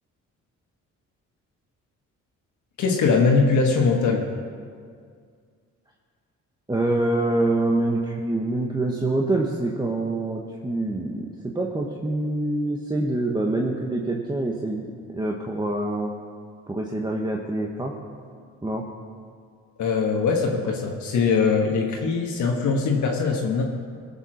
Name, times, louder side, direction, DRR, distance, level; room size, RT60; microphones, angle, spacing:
voice 1, 2.8-4.2 19.8-23.6, left 4 dB, 70° left, 0 dB, 1.5 m, -21 dB
voice 2, 6.7-11.3 11.5-14.9 15.1-16.1 16.7-17.9 18.6-18.9, right 2 dB, 15° right, -1 dB, 1.2 m, -25 dB
18.0 x 7.1 x 6.3 m, 2.1 s
cardioid pair, 90°, 30 cm